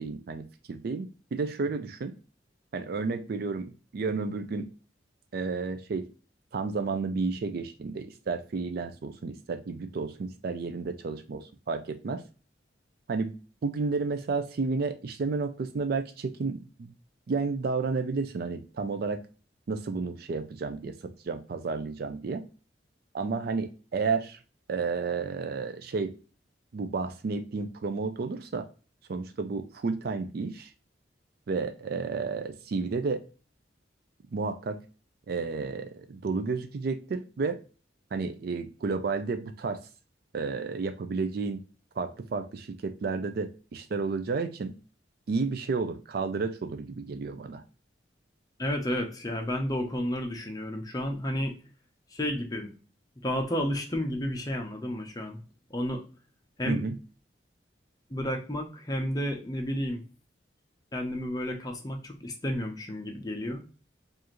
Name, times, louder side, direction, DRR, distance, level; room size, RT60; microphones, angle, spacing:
voice 1, 0.0-2.1 2.7-4.7 5.3-6.1 6.5-12.2 13.1-13.3 13.6-16.9 17.3-19.2 19.7-22.4 23.1-24.4 24.7-26.1 26.7-28.7 29.1-30.7 31.5-33.2 34.3-34.8 35.3-37.6 38.1-39.8 40.3-41.6 42.0-44.7 45.3-47.6 56.6-57.0, right 4 dB, 55° right, 9 dB, 0.4 m, -31 dB
voice 2, 48.6-51.5 52.1-52.7 53.2-55.4 55.7-56.0 56.6-56.8 58.1-60.0 60.9-63.6, equal, 20° left, 2 dB, 0.7 m, -31 dB
4.7 x 2.5 x 2.9 m, 0.35 s
head